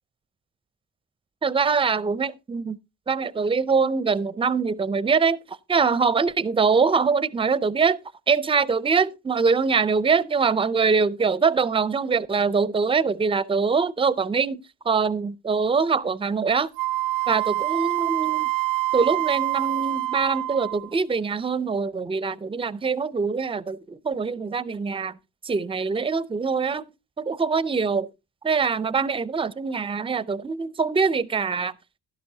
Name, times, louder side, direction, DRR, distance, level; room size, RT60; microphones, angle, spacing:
voice 1, 1.4-2.8 3.1-8.0 8.3-16.7 17.3-18.5 18.9-25.2 25.4-26.8 27.2-28.1 28.4-31.7, right 5 dB, 15° right, 0.4 m, -23 dB
Wind instrument woodwind instrument, 16.8-20.9, right 17 dB, 80° right, 0.6 m, -26 dB
11.5 x 11.0 x 2.7 m
supercardioid pair, 55°, 45 cm